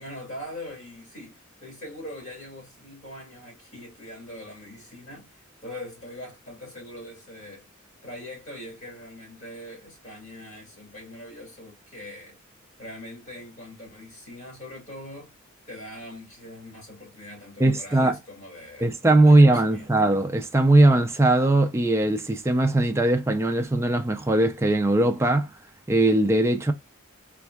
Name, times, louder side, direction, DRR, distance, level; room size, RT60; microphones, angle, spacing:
voice 1, 0.0-7.7 8.0-12.4 12.8-15.3 15.7-18.9 19.3-20.0, left 1 dB, 35° left, 2.3 m, -42 dB
voice 2, 17.6-18.2 18.8-25.5 25.9-26.7, right 2 dB, 15° right, 0.4 m, -20 dB
4.3 x 2.3 x 2.2 m
head